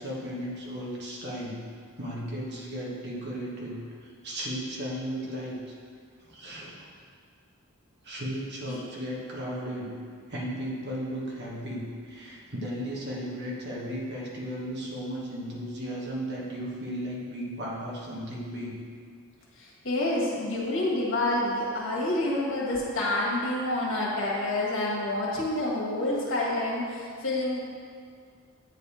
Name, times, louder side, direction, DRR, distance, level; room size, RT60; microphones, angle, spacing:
voice 1, 0.0-1.7 2.0-5.6 6.2-6.8 8.0-10.0 10.3-18.8, equal, 55° right, -4 dB, 1.2 m, -35 dB
voice 2, 19.6-27.6, left 1 dB, 65° left, -5 dB, 1.5 m, -28 dB
9.1 x 3.4 x 4.2 m, 2.1 s
head